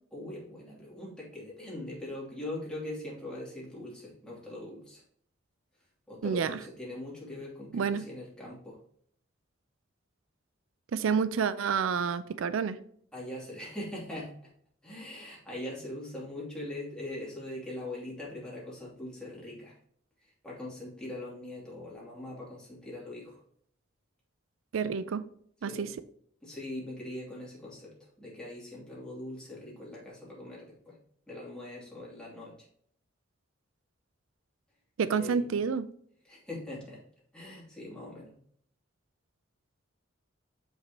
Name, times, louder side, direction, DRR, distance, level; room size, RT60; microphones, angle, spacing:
voice 1, 0.1-5.0 6.1-8.8 13.1-14.5 14.8-19.8 20.4-23.4 25.6-25.9 26.4-31.0 31.3-32.7 35.2-35.4 36.2-37.0 37.3-38.3, left 1 dB, 5° left, -6 dB, 2.7 m, -41 dB
voice 2, 6.2-6.6 7.7-8.0 10.9-12.8 24.7-25.2 25.6-25.9 35.0-35.9, right 6 dB, 85° right, 13 dB, 0.4 m, -29 dB
6.8 x 5.4 x 2.9 m, 0.62 s
head